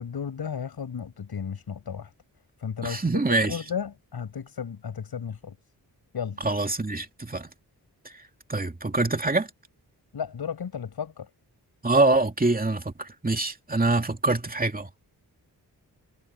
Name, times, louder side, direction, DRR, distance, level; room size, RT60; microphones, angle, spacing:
voice 1, 0.0-2.1 2.6-5.6 6.1-6.4 10.1-11.3, left 7 dB, 90° left, 6.8 m, -34 dB
voice 2, 2.8-3.6 6.4-7.5 8.5-9.5 11.8-14.9, right 2 dB, 25° right, 2.6 m, -24 dB
wide cardioid pair, 95°, 37 cm